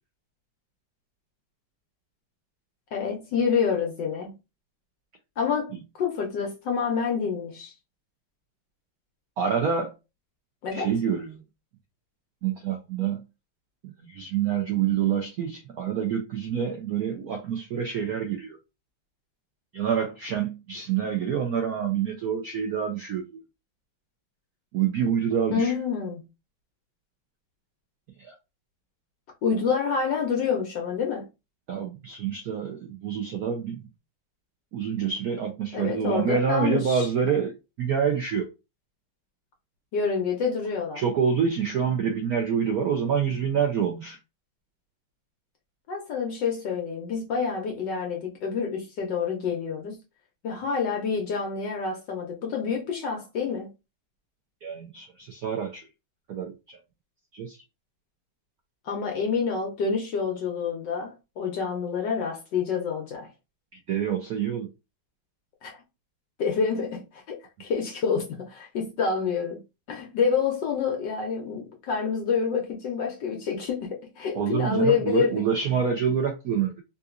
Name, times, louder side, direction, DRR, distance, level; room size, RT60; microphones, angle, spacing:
voice 1, 2.9-4.3 5.4-7.7 10.6-10.9 25.5-26.2 29.4-31.3 35.7-37.1 39.9-41.0 45.9-50.0 50.4-53.7 58.8-63.3 65.6-65.8 66.4-69.6 69.9-75.4, left 6 dB, 70° left, 1.3 m, -28 dB
voice 2, 9.4-9.9 10.7-11.4 12.4-13.2 14.0-18.6 19.7-23.4 24.7-25.7 28.2-28.3 31.7-33.9 34.7-37.5 37.8-38.5 41.0-44.2 54.6-55.9 56.3-56.8 57.3-57.6 63.7-64.7 74.3-76.8, right 7 dB, 65° right, 0.9 m, -27 dB
3.7 x 2.7 x 2.4 m
omnidirectional pair, 2.2 m